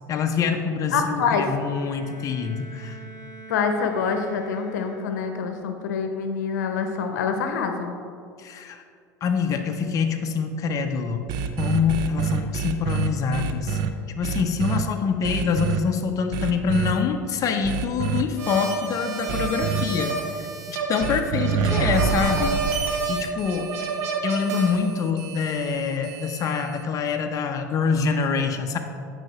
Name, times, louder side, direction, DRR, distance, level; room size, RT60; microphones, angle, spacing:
voice 1, 0.1-3.0 8.4-8.8 9.2-11.2 11.6-13.8 14.1-23.7 24.2-28.8, left 6 dB, 35° left, 5 dB, 0.6 m, -25 dB
voice 2, 0.9-1.5 3.5-7.9, left 5 dB, 75° left, 6 dB, 0.8 m, -26 dB
Bowed string instrument, 1.3-5.4, right 3 dB, 90° right, 1.5 m, -45 dB
sound 1, 11.3-13.9 14.2-14.8 15.2-15.8 16.3-16.9 17.6-18.2 19.3-19.8 21.0-26.8, right 7 dB, 50° right, 0.6 m, -28 dB
sound 2, 18.4-24.8, right 4 dB, 70° right, 1.0 m, -29 dB
9.1 x 4.9 x 4.3 m, 2.3 s
hypercardioid pair, 85°, 9 cm